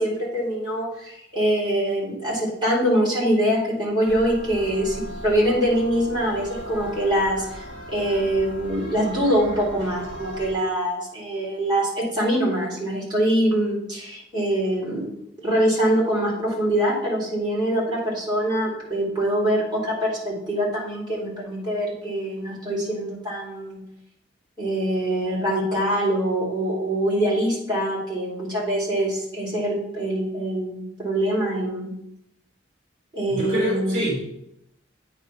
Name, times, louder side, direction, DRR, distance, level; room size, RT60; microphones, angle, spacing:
voice 1, 0.0-7.6 7.9-15.1 15.4-23.8 24.6-31.9 33.1-33.9, right 1 dB, 25° right, -6 dB, 2.9 m, -24 dB
sound 1, 4.0-10.5, equal, 70° right, 1.5 m, -37 dB
voice 2, 33.3-34.2, equal, 40° right, -8 dB, 2.7 m, -25 dB
8.8 x 3.3 x 5.7 m, 0.80 s
head